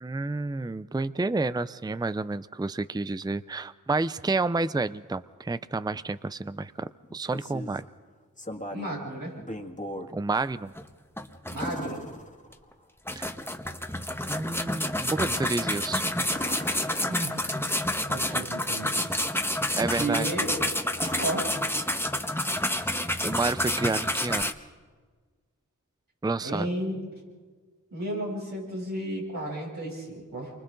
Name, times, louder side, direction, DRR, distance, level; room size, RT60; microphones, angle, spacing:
voice 1, 0.0-7.8 10.1-10.7 13.2-13.3 14.3-16.2 18.3-18.4 19.8-20.3 23.2-24.5 26.2-26.7, right 3 dB, 15° right, 15 dB, 0.5 m, -30 dB
sound 1, 7.0-7.9 8.4-9.0 9.4-10.1 11.6-12.8 16.3-17.6 20.1-20.4 20.9-22.3 24.5-24.6, left 1 dB, 25° left, 2.0 m, -39 dB
voice 2, 8.7-9.4 11.5-12.0 17.1-17.6 18.1-19.1 19.8-20.7 21.2-21.5 26.4-27.0 27.9-30.5, right 1 dB, 90° right, -4 dB, 7.9 m, -33 dB
sound 2, 10.8-10.9 11.2-12.1 12.5-12.6 13.1-24.5, left 1 dB, 5° left, 1.3 m, -29 dB
29.0 x 24.5 x 3.9 m, 1.5 s
wide cardioid pair, 40°, 32 cm